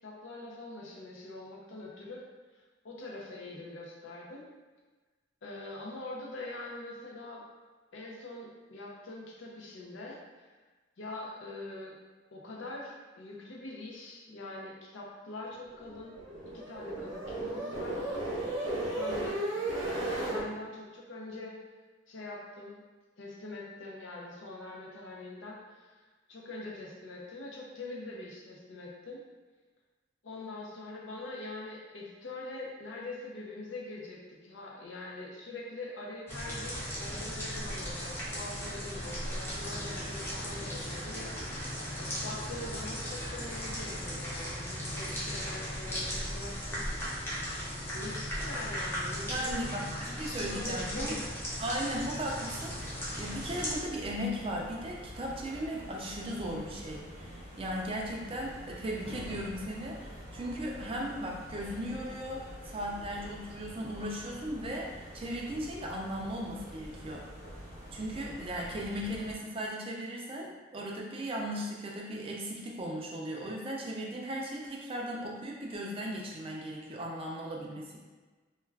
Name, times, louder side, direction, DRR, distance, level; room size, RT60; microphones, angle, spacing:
voice 1, 0.0-2.2 2.8-4.5 5.4-7.4 7.9-10.2 11.0-12.0 12.3-16.1 16.5-18.0 18.6-21.5 22.1-22.8 23.2-25.9 26.3-29.2 30.2-41.6 41.9-46.8 47.9-49.7 50.2-51.4, left 2 dB, 75° left, -3 dB, 0.6 m, -43 dB
sound 1, 15.7-20.4, right 2 dB, 85° right, 0.7 m, -35 dB
sound 2, 36.3-53.8, equal, 10° left, 0.6 m, -37 dB
voice 2, 49.3-51.1 51.6-67.2 67.9-78.0, equal, 30° right, -1 dB, 0.4 m, -37 dB
sound 3, 52.6-69.4, equal, 50° left, 1.0 m, -47 dB
2.3 x 2.3 x 3.3 m, 1.3 s
head